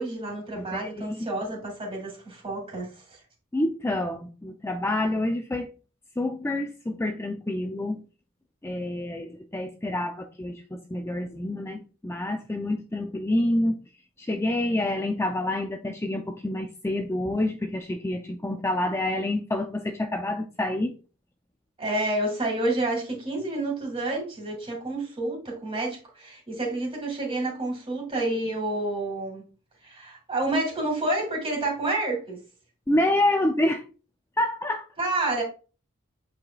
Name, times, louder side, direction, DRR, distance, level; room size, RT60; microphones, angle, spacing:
voice 1, 0.0-3.2 21.8-29.4 29.8-32.4 35.0-35.4, right 2 dB, 25° right, 2.6 m, -29 dB
voice 2, 0.6-1.2 3.5-5.7 6.2-8.0 8.6-13.8 14.2-20.9 32.9-33.8 34.4-34.8, left 1 dB, 10° left, 0.4 m, -27 dB
8.3 x 4.9 x 2.3 m
head